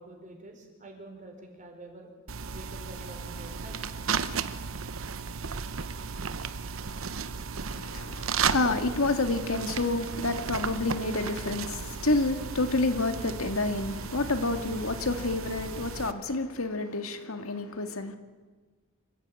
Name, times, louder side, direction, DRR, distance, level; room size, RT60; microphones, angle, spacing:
voice 1, 0.0-2.1 2.5-3.9, right 1 dB, 40° right, 4.9 m, -47 dB
sound 1, 2.3-16.1, right 6 dB, 70° right, 0.9 m, -34 dB
voice 2, 7.7-18.2, left 2 dB, 85° left, 2.0 m, -29 dB
26.5 x 15.0 x 9.0 m
head